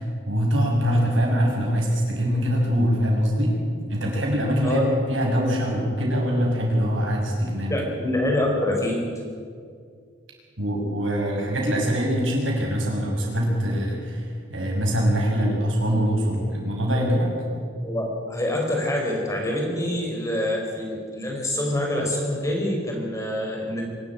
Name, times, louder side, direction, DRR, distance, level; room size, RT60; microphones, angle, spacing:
voice 1, 0.0-3.6 3.9-7.8 10.6-14.2 14.5-17.3, equal, 80° right, -1 dB, 6.5 m, -23 dB
voice 2, 7.7-9.1 17.8-23.9, left 1 dB, 15° left, 0 dB, 4.1 m, -26 dB
24.5 x 13.0 x 8.9 m, 2.2 s
head